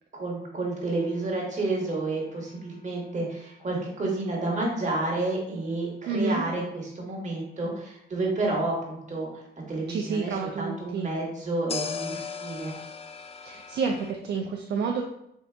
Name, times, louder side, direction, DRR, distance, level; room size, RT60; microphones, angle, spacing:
voice 1, 0.1-9.3 9.7-12.7, right 2 dB, 35° right, -2 dB, 1.4 m, -30 dB
sound 1, 0.9-3.9 11.7-14.1, left 6 dB, 30° left, 0.3 m, -39 dB
voice 2, 6.1-6.4 9.9-11.1 13.4-15.0, right 4 dB, 60° right, 2 dB, 0.4 m, -29 dB
3.6 x 2.7 x 3.3 m, 0.78 s
cardioid pair, 90°, 20 cm